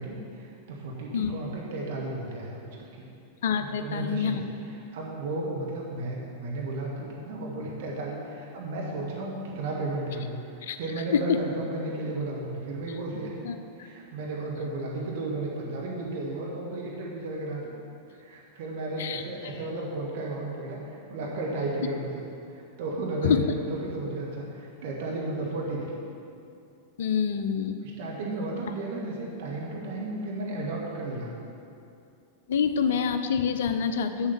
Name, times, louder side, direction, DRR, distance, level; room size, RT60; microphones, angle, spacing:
voice 1, 0.0-3.1 3.6-4.4 4.9-13.3 13.7-17.7 18.1-22.2 22.5-26.0 27.8-31.3, right 2 dB, 55° right, -2 dB, 1.4 m, -34 dB
voice 2, 3.4-4.5 10.7-10.8 11.1-11.2 13.4-13.6 19.0-19.2 23.2-23.4 27.0-27.8 32.5-34.3, left 7 dB, 60° left, 9 dB, 0.6 m, -26 dB
7.2 x 7.1 x 6.8 m, 2.6 s
figure-of-eight pair, 90°, 0 cm